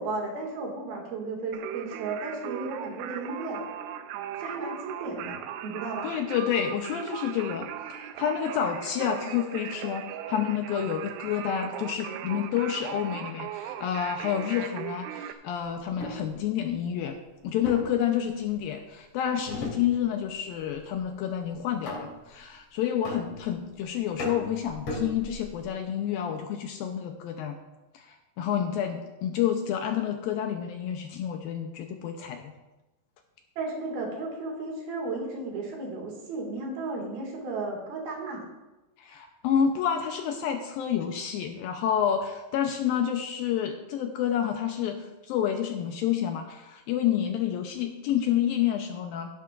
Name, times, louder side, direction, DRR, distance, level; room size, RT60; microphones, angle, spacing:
voice 1, 0.0-3.6 4.4-6.1 33.6-38.4, right 3 dB, 65° right, -1 dB, 3.9 m, -34 dB
Singing, 1.5-15.3, right 11 dB, 85° right, 2.7 m, -38 dB
voice 2, 6.0-17.2 17.4-27.6 27.9-32.5 39.0-49.3, left 9 dB, 75° left, 5 dB, 2.3 m, -29 dB
sound 1, 15.8-16.3 17.6-18.7 19.5-20.3 20.6-21.0 21.9-22.4 23.0-23.7 24.2-25.6, left 1 dB, 40° left, 3.8 m, -37 dB
17.0 x 10.5 x 2.5 m, 1.0 s
omnidirectional pair, 4.7 m